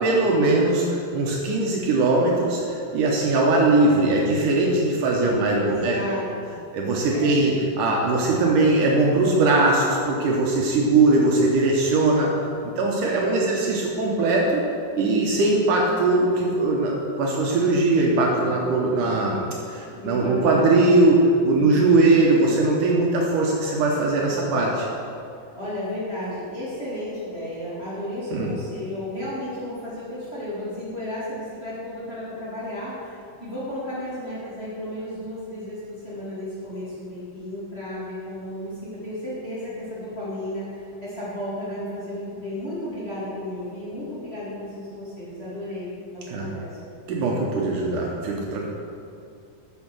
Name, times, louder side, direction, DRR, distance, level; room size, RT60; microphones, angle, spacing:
voice 1, 0.0-6.0 6.7-12.3 12.8-14.6 14.9-19.4 19.7-24.9 28.3-28.5 46.3-46.5 47.1-48.7, right 2 dB, 70° right, -2 dB, 2.3 m, -20 dB
voice 2, 5.6-6.6 7.1-7.4 13.0-13.5 19.9-20.7 21.5-22.2 25.5-46.8, left 1 dB, 20° left, -10 dB, 2.3 m, -33 dB
9.1 x 6.4 x 6.2 m, 2.5 s
omnidirectional pair, 4.1 m